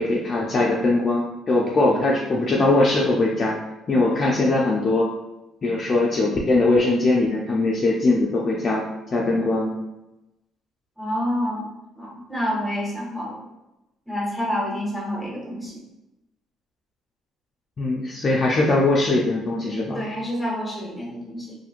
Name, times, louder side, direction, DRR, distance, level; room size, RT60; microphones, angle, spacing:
voice 1, 0.0-3.6 3.9-5.1 5.6-8.8 9.1-9.8 17.8-20.0, left 2 dB, 30° left, -3 dB, 0.4 m, -21 dB
voice 2, 11.0-13.4 14.1-15.8 19.9-21.5, equal, 5° left, -4 dB, 0.8 m, -28 dB
3.0 x 2.5 x 2.4 m, 0.97 s
cardioid pair, 145°, 0 cm